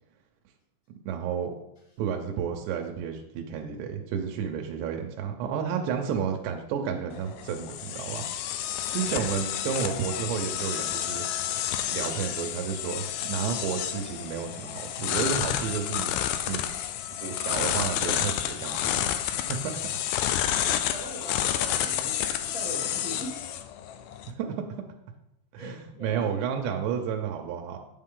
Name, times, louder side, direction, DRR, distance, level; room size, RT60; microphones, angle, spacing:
voice 1, 1.1-1.5 2.0-8.2 8.9-11.2 11.9-16.1 16.5-16.6 17.2-19.1 19.5-19.8 24.3-24.7 25.5-27.8, right 7 dB, 85° right, 3 dB, 2.9 m, -31 dB
sound 1, 7.1-24.3, left 11 dB, 85° left, 2.2 m, -30 dB
voice 2, 20.9-23.4 25.5-26.2, right 1 dB, 30° right, -6 dB, 0.6 m, -40 dB
8.5 x 7.5 x 3.7 m, 0.84 s
omnidirectional pair, 4.8 m